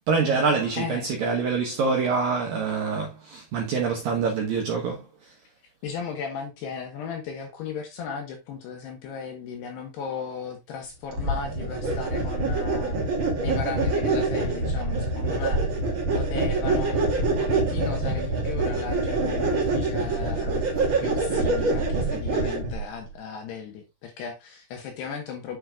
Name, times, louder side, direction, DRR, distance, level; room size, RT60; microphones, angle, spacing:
voice 1, 0.1-5.3, right 5 dB, 75° right, 2.1 m, -25 dB
voice 2, 0.8-1.1 5.8-13.0 13.4-15.6 16.1-17.1 17.4-25.6, left 6 dB, 70° left, 2.7 m, -36 dB
sound 1, 11.1-22.8, right 2 dB, 35° right, 2.1 m, -25 dB
10.0 x 6.4 x 2.4 m
omnidirectional pair, 6.0 m